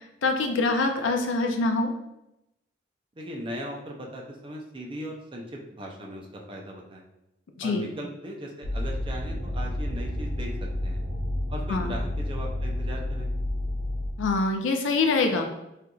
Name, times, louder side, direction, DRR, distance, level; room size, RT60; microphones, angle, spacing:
voice 1, 0.2-1.9 7.6-7.9 11.7-11.9 14.2-15.5, left 3 dB, 75° left, 4 dB, 0.4 m, -24 dB
voice 2, 3.2-7.0 7.6-11.0 11.5-13.3, equal, 25° right, 0 dB, 0.4 m, -38 dB
sound 1, 8.6-14.1, left 1 dB, 75° right, 0.6 m, -30 dB
4.3 x 2.5 x 2.3 m, 0.88 s
head